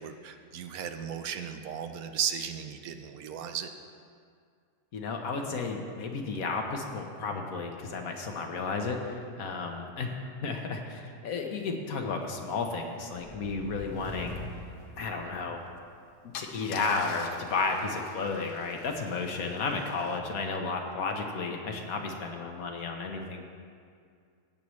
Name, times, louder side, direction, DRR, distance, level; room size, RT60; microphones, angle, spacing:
voice 1, 0.0-3.7, right 8 dB, 75° right, 7 dB, 1.0 m, -35 dB
voice 2, 4.9-10.1 10.4-14.4 15.0-15.6 16.4-23.4, left 4 dB, 70° left, 3 dB, 1.4 m, -33 dB
sound 1, 13.1-15.8, equal, 20° left, 0.8 m, -43 dB
Car / Engine starting / Idling, 15.6-15.8 16.3-20.2, left 7 dB, 90° left, 1.2 m, -47 dB
15.5 x 8.4 x 3.1 m, 2.2 s
omnidirectional pair, 1.6 m